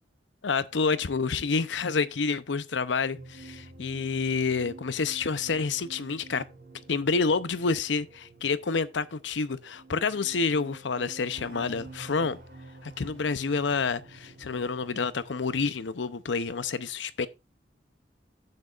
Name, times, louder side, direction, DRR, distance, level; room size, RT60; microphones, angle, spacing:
voice 1, 0.4-6.4 6.9-12.4 12.8-17.3, left 4 dB, 90° left, 0.7 m, -28 dB
sound 1, 3.2-15.9, right 2 dB, 60° right, 5.0 m, -49 dB
12.0 x 8.7 x 2.5 m
head